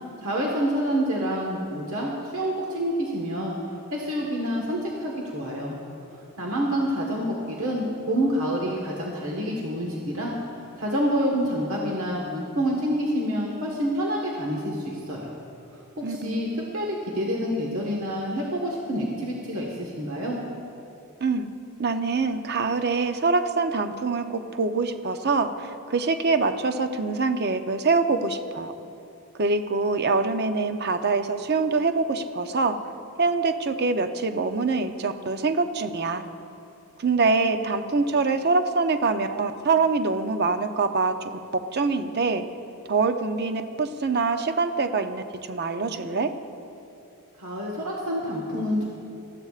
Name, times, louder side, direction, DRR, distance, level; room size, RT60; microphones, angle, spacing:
voice 1, 0.2-3.6 3.9-5.8 6.4-15.3 16.0-20.4 47.4-48.9, equal, 70° right, -2 dB, 1.4 m, -27 dB
voice 2, 16.0-16.5 21.2-21.5 21.8-28.7 29.4-32.8 33.2-36.3 37.0-42.5 42.9-46.3, right 4 dB, 45° right, 8 dB, 0.6 m, -24 dB
19.0 x 14.0 x 2.5 m, 2.7 s
head